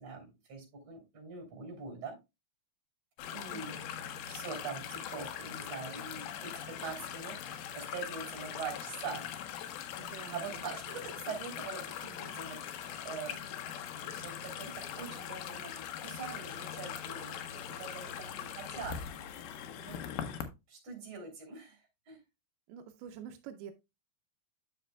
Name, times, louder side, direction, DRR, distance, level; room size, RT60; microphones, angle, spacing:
voice 1, 0.0-2.2 3.3-9.2 10.3-13.4 14.0-19.4 19.7-20.0 20.7-22.2, right 5 dB, 40° right, 2 dB, 3.7 m, -44 dB
sound 1, 3.2-20.5, left 9 dB, 75° left, 2.5 m, -41 dB
voice 2, 3.5-4.0 10.0-10.6 22.7-23.7, right 9 dB, 85° right, 7 dB, 2.2 m, -48 dB
9.9 x 6.5 x 2.2 m, 0.23 s
omnidirectional pair, 5.1 m